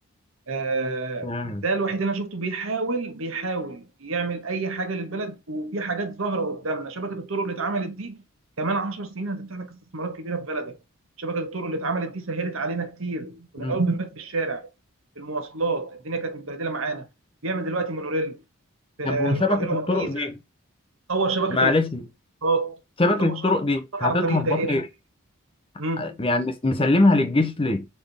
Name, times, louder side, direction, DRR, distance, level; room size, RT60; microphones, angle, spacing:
voice 1, 0.5-8.2 8.6-10.8 11.2-14.7 15.2-17.1 17.4-18.4 19.0-20.3 21.1-21.7 22.4-22.8 23.2-23.5 23.9-24.8 25.8-26.2, right 3 dB, 70° right, 1.1 m, -28 dB
voice 2, 1.2-1.6 13.6-13.8 19.0-20.4 21.5-22.0 23.0-24.8 26.0-27.9, left 2 dB, 25° left, 0.7 m, -23 dB
4.3 x 3.5 x 3.4 m
head